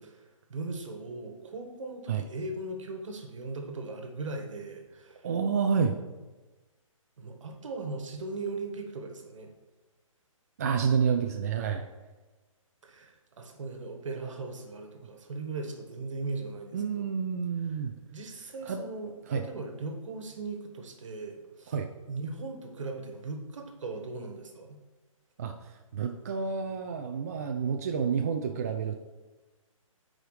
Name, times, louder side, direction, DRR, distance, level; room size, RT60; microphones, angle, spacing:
voice 1, 0.0-5.3 7.2-9.5 12.8-17.1 18.1-21.7 22.1-24.8, right 3 dB, 65° right, 3 dB, 1.5 m, -39 dB
voice 2, 5.2-6.0 10.6-11.8 16.7-17.9 18.7-18.8 19.3-19.4 21.7-21.9 25.4-29.0, right 6 dB, 30° right, 4 dB, 0.3 m, -29 dB
11.5 x 4.9 x 3.2 m, 1.2 s
hypercardioid pair, 155°, 18 cm